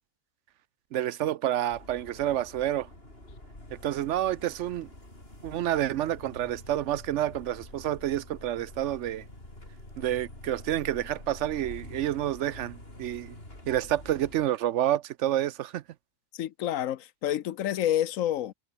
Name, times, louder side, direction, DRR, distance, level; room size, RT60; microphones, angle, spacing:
voice 1, 0.9-2.9 3.8-4.9 5.4-9.2 10.0-13.3 13.7-15.8, right 12 dB, 70° right, 0.8 m, -29 dB
sound 1, 1.7-14.5, left 1 dB, 50° left, 7.5 m, -47 dB
voice 2, 16.3-18.5, left 11 dB, 90° left, 1.2 m, -28 dB
omnidirectional pair, 1.3 m